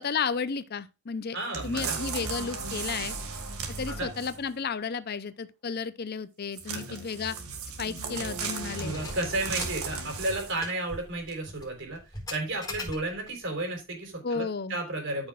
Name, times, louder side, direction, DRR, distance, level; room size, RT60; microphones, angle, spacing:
voice 1, 0.0-1.4 1.6-3.1 3.8-7.4 7.8-8.9 14.2-14.8, left 5 dB, 45° left, 0.5 m, -33 dB
voice 2, 1.3-2.0 3.9-4.1 6.7-7.0 8.8-15.3, right 2 dB, 55° right, 3.7 m, -33 dB
sound 1, 1.5-4.5 6.5-10.7 11.3-11.4, right 4 dB, 85° right, 1.9 m, -36 dB
Keys jangling, 6.8-7.0 7.3-7.4 7.9-8.2 8.7-13.4, left 2 dB, 15° left, 4.4 m, -42 dB
13.5 x 6.1 x 2.4 m
head